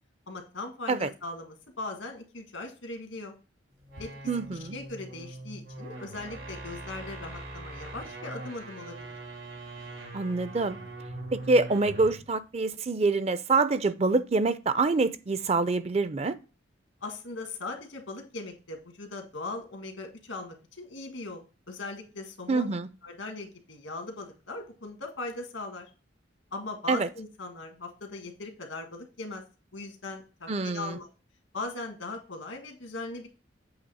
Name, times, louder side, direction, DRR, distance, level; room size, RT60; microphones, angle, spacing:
voice 1, 0.3-3.4 4.0-4.1 4.6-9.0 17.0-21.4 21.7-22.7 23.0-25.9 26.5-29.4 29.7-31.1 31.5-33.3, left 2 dB, 85° left, 1.7 m, -39 dB
sound 1, 3.8-12.3, right 2 dB, 85° right, 3.1 m, -42 dB
voice 2, 4.3-4.8 10.1-10.8 11.3-16.4 22.5-22.9 26.9-27.1 30.5-31.0, right 3 dB, 35° right, 0.4 m, -26 dB
8.0 x 3.2 x 5.5 m
head